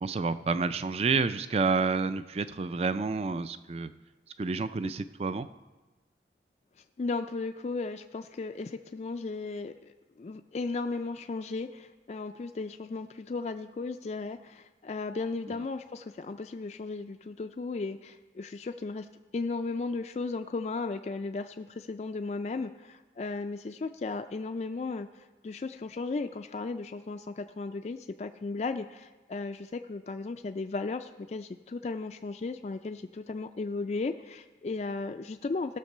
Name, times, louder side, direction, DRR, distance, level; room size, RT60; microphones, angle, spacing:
voice 1, 0.0-3.9 4.4-5.5, right 4 dB, 35° right, 13 dB, 0.4 m, -29 dB
voice 2, 7.0-19.1 19.3-35.8, left 3 dB, 40° left, 6 dB, 0.3 m, -35 dB
16.5 x 6.7 x 5.5 m, 1.2 s
head